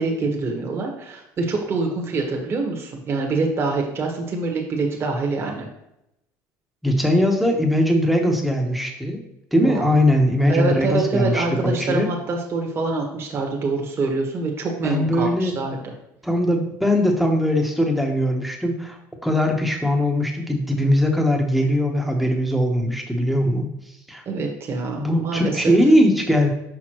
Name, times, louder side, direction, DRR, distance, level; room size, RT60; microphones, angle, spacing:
voice 1, 0.0-5.7 9.6-9.9 10.5-15.9 24.2-25.7, right 3 dB, 35° right, 0 dB, 1.3 m, -25 dB
voice 2, 6.8-9.2 9.5-12.1 14.8-15.5 16.2-23.7 24.1-24.2 25.0-26.5, equal, ahead, 2 dB, 1.0 m, -20 dB
6.2 x 5.6 x 3.0 m, 0.83 s
cardioid pair, 120°, 7 cm